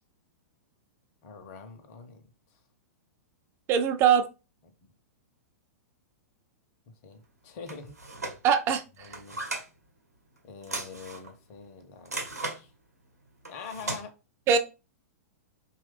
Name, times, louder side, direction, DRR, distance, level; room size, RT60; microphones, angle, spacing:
voice 1, 1.2-2.2 4.7-4.8 7.0-8.0 9.0-9.5 10.4-12.7 13.5-14.1, left 5 dB, 40° left, 6 dB, 0.6 m, -44 dB
voice 2, 3.7-4.3 8.4-8.8 14.5-14.6, right 7 dB, 30° right, 8 dB, 0.4 m, -21 dB
sound 1, 7.7-8.4 9.0-9.7 10.6-11.3 12.0-12.6 13.4-14.0, right 3 dB, 80° right, 0.9 m, -36 dB
2.9 x 2.3 x 3.3 m, 0.29 s
figure-of-eight pair, 105°, 8 cm